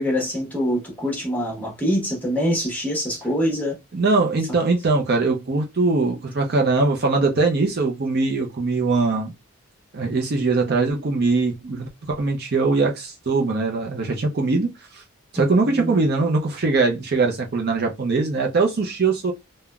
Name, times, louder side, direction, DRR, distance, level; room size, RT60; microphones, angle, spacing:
voice 1, 0.0-3.8 15.4-15.9, equal, 5° left, 1.0 m, -24 dB
voice 2, 3.9-9.3 9.9-15.0 15.3-19.3, right 3 dB, 45° right, 0.5 m, -21 dB
3.5 x 2.1 x 2.3 m
head